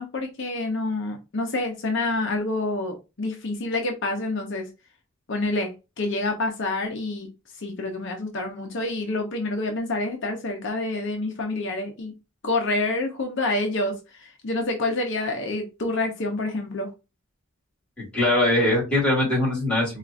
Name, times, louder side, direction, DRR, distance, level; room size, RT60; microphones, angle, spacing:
voice 1, 0.0-4.7 5.3-7.3 7.6-12.1 12.4-16.9, left 2 dB, 60° left, 0.6 m, -28 dB
voice 2, 18.0-20.0, left 1 dB, 5° left, 2.0 m, -22 dB
4.4 x 2.4 x 2.5 m
head